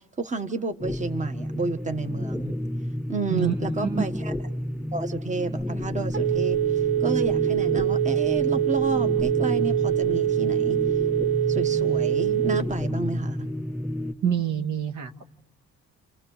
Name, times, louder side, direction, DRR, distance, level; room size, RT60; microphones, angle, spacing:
voice 1, 0.2-2.5 3.1-4.3 4.9-10.8 11.5-13.5, right 3 dB, 25° right, 8 dB, 1.6 m, -31 dB
sound 1, 0.8-14.1, left 1 dB, ahead, 2.6 m, -31 dB
Telephone, 5.6-12.9, right 12 dB, 45° right, 1.7 m, -24 dB
voice 2, 14.2-15.2, right 9 dB, 75° right, 6 dB, 2.0 m, -26 dB
29.0 x 28.0 x 6.7 m, 0.76 s
cardioid pair, 90°, 30 cm